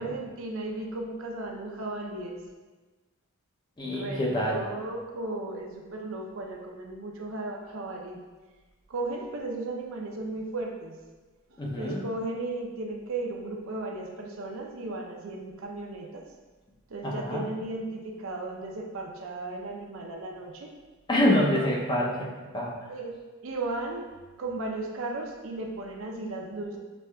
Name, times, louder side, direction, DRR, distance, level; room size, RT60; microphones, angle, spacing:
voice 1, 0.0-2.4 3.8-8.2 8.9-11.0 11.5-16.2 16.9-20.7 21.5-21.7 22.9-26.8, right 2 dB, 70° right, 1 dB, 0.6 m, -35 dB
voice 2, 3.8-4.6 11.6-12.0 17.0-17.4 21.1-22.7, left 1 dB, 20° left, -3 dB, 0.5 m, -26 dB
6.2 x 3.3 x 2.2 m, 1.3 s
head